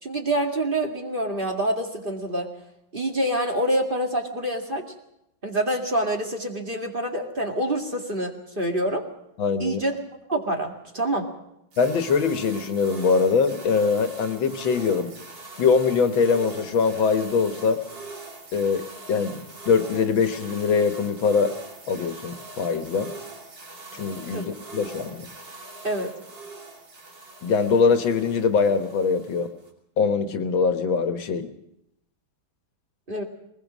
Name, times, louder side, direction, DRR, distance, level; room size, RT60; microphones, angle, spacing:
voice 1, 0.0-2.5 2.9-4.8 5.4-9.0 9.6-10.0 10.3-11.3 24.3-24.5 25.8-26.2 33.1-33.2, right 1 dB, 25° right, 2 dB, 2.2 m, -26 dB
voice 2, 9.4-9.8 11.8-15.1 15.6-17.8 18.5-21.5 21.9-23.1 23.9-25.3 27.4-29.5 30.0-31.5, left 5 dB, 80° left, 8 dB, 2.1 m, -23 dB
sound 1, 11.7-29.7, right 3 dB, 65° right, 3.6 m, -42 dB
21.5 x 20.0 x 6.2 m, 0.82 s
omnidirectional pair, 2.1 m